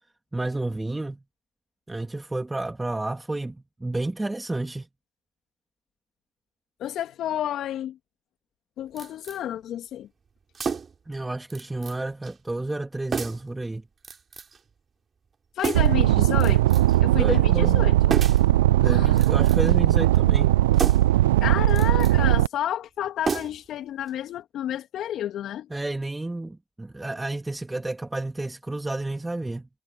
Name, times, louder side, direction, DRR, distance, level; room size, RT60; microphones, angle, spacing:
voice 1, 0.3-1.2 1.9-4.9 11.1-13.8 17.2-17.8 18.8-20.5 25.7-29.7, right 2 dB, 10° right, 2.9 m, -31 dB
voice 2, 6.8-8.0 8.8-10.1 15.6-18.2 18.8-19.2 21.4-25.7, left 11 dB, 55° left, 2.1 m, -31 dB
sound 1, 9.0-9.4 10.5-11.1 11.5-12.0 12.2-12.4 13.1-13.5 14.0-14.6 15.6-16.0 16.4-17.0 18.1-18.5 19.1-19.8 20.7-21.2 21.7-22.2 23.2-23.8 24.1-24.2, right 6 dB, 35° right, 3.6 m, -31 dB
sound 2, 15.7-22.5, right 15 dB, 85° right, 0.4 m, -19 dB
hypercardioid pair, 70°, 0 cm